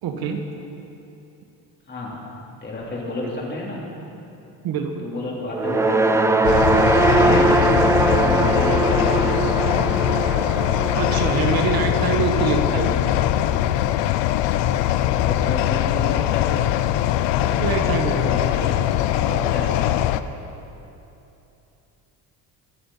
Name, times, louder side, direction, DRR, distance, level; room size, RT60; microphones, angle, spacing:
voice 1, 0.0-0.5 4.6-5.1 10.9-13.1 17.4-18.3, right 6 dB, 55° right, 4 dB, 1.3 m, -25 dB
voice 2, 2.6-3.8 5.0-6.4 7.1-9.3 14.7-15.0 15.2-16.7 17.2-17.5 18.1-18.8 19.1-20.0, left 2 dB, 25° left, -4 dB, 3.2 m, -30 dB
sound 1, 5.5-13.9, right 2 dB, 10° right, 0.3 m, -21 dB
sound 2, 6.4-20.2, left 13 dB, 75° left, 0.6 m, -21 dB
23.5 x 8.0 x 5.5 m, 2.9 s
cardioid pair, 140°, 43 cm